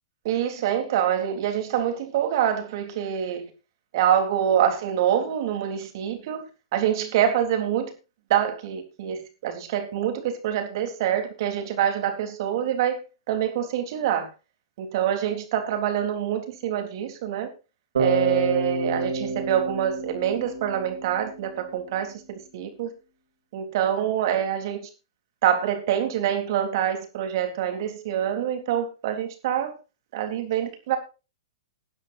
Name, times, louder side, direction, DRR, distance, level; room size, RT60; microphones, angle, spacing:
voice 1, 0.2-3.4 3.9-6.4 6.7-7.9 8.3-13.0 13.3-14.3 14.8-17.5 18.0-22.9 23.5-24.8 25.4-29.7 30.1-31.0, right 10 dB, 55° right, 3.6 m, -25 dB
Bass guitar, 17.9-21.9, right 3 dB, 75° right, 4.8 m, -28 dB
20.5 x 9.9 x 2.7 m
hypercardioid pair, 110°, 3 cm